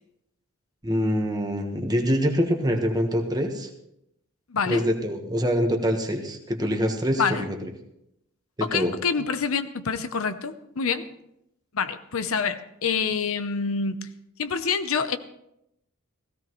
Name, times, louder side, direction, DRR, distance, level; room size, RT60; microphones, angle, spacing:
voice 1, 0.8-3.7 4.7-7.5 8.6-8.9, equal, 20° right, 4 dB, 1.3 m, -25 dB
voice 2, 4.5-4.9 7.2-7.4 8.6-11.1 11.7-14.1 14.4-15.2, left 5 dB, 70° left, 10 dB, 0.8 m, -27 dB
17.0 x 15.5 x 3.1 m, 0.81 s
head